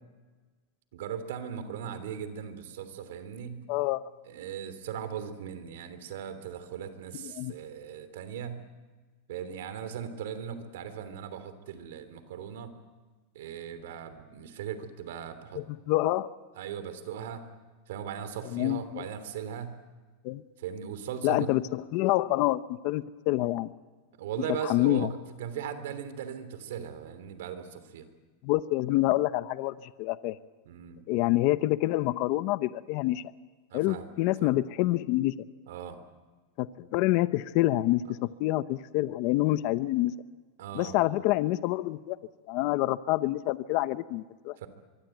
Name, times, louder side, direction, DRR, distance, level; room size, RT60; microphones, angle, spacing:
voice 1, 0.9-3.7 4.3-8.6 9.3-12.7 13.3-15.6 16.5-17.4 17.9-19.8 20.6-21.5 24.2-28.1 30.6-31.0 33.7-34.1 34.4-34.5 35.7-36.0 40.6-41.0 44.6-44.7, right 8 dB, 75° right, 11 dB, 3.1 m, -38 dB
voice 2, 3.7-4.0 7.2-7.5 15.5-16.3 18.5-19.0 20.2-20.4 21.2-23.7 24.6-25.1 28.4-30.4 31.1-33.2 33.7-35.3 36.6-40.1 40.7-42.2 42.5-44.6, left 17 dB, 45° left, 14 dB, 0.8 m, -27 dB
24.0 x 23.5 x 9.2 m, 1.3 s
supercardioid pair, 165°, 0 cm